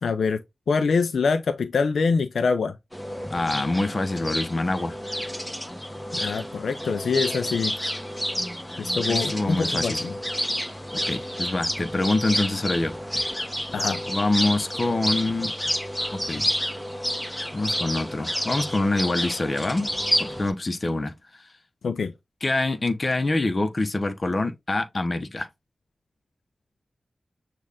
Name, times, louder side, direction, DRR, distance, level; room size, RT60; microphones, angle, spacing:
voice 1, 0.0-0.4 0.7-2.8 6.1-7.8 8.8-10.1 13.7-14.0 21.8-22.1, left 5 dB, 85° left, 0.4 m, -24 dB
sound 1, 2.9-20.5, equal, 10° left, 1.3 m, -29 dB
voice 2, 3.3-5.0 9.1-10.0 10.9-12.9 14.1-15.5 16.1-16.5 17.5-19.9 20.2-21.1 22.4-25.5, left 2 dB, 50° left, 0.8 m, -25 dB
6.4 x 2.4 x 3.4 m
cardioid pair, 40°, 0 cm